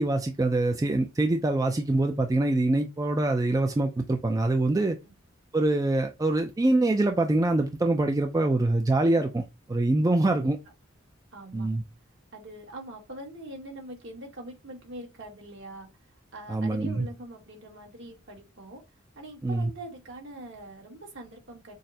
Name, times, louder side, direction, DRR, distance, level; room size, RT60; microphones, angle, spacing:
voice 1, 0.0-5.0 5.5-9.4 9.7-10.6 11.5-11.8 16.5-17.1 19.4-19.7, right 2 dB, 15° right, 0.3 m, -24 dB
voice 2, 11.3-11.7 12.3-15.9 16.3-18.8 19.1-21.7, right 1 dB, 65° right, 1.6 m, -43 dB
6.2 x 2.1 x 2.7 m
head